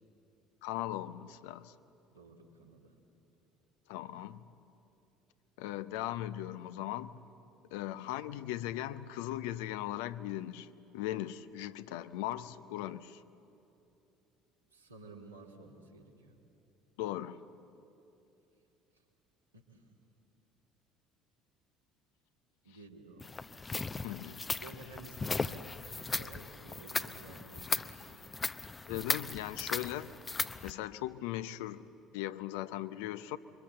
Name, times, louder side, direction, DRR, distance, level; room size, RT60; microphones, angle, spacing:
voice 1, 0.6-1.7 3.9-4.5 5.6-7.2 7.7-13.2 17.0-17.4 24.0-24.4 28.9-30.1 30.6-31.9 32.1-33.4, left 13 dB, 65° left, 13 dB, 0.7 m, -38 dB
voice 2, 2.1-3.0 14.7-16.3 19.5-19.9 22.6-23.3 24.6-25.6 26.1-28.3, right 3 dB, 85° right, -1 dB, 2.5 m, -53 dB
sound 1, 23.2-30.7, left 4 dB, 20° left, 0.7 m, -37 dB
27.5 x 23.5 x 7.7 m, 2.8 s
figure-of-eight pair, 60°, 0 cm